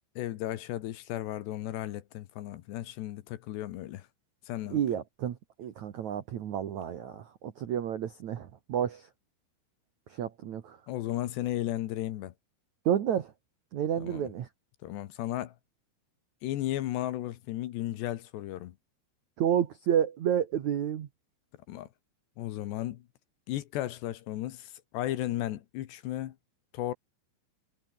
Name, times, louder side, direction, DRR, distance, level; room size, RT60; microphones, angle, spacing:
voice 1, 0.2-4.1 4.5-4.8 10.9-12.3 14.0-14.3 14.8-15.5 16.4-18.7 21.7-21.9 22.4-23.0 23.5-26.4 26.7-26.9, left 14 dB, 70° left, 3.1 m, -34 dB
voice 2, 4.7-9.1 10.1-10.8 12.8-13.3 13.7-14.5 19.4-21.1, right 9 dB, 75° right, 1.7 m, -30 dB
omnidirectional pair, 5.6 m